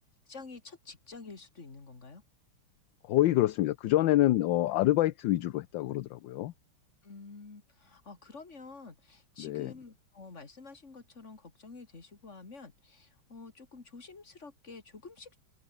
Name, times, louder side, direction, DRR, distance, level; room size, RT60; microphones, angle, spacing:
voice 1, 0.3-2.2 7.0-15.4, left 4 dB, 35° left, 3.0 m, -49 dB
voice 2, 3.1-6.5 9.4-9.7, left 15 dB, 70° left, 1.3 m, -26 dB
open air
omnidirectional pair, 2.3 m